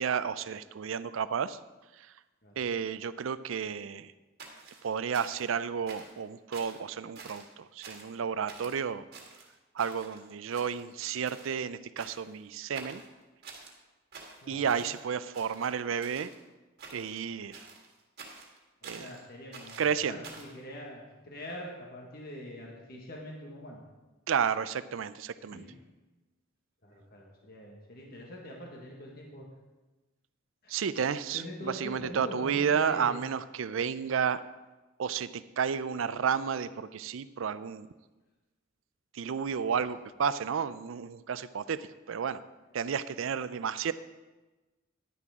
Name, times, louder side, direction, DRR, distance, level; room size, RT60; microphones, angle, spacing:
voice 1, 0.0-1.6 2.6-4.1 4.8-9.0 9.8-13.0 14.5-16.3 16.9-17.7 18.8-19.1 19.8-20.2 24.3-25.6 30.7-34.4 35.0-37.9 39.1-42.4 42.7-43.9, right 7 dB, 80° right, 15 dB, 0.4 m, -32 dB
sound 1, 4.4-5.5 5.9-6.2 6.5-6.8 7.2-7.5 7.8-8.2 8.5-8.8 9.1-10.2 10.5-11.0 11.2-11.6 12.0-12.4 12.7-13.7 14.1-15.0 15.3-16.4 16.8-17.2 17.5-19.2 19.5-20.6, right 4 dB, 55° right, 1.7 m, -48 dB
voice 2, 14.4-14.8 18.9-23.8 25.5-25.8 26.8-29.5 30.6-30.8 31.3-33.2 39.7-39.8 42.7-42.8, equal, 50° left, -1 dB, 1.6 m, -44 dB
11.0 x 9.8 x 3.6 m, 1.1 s
head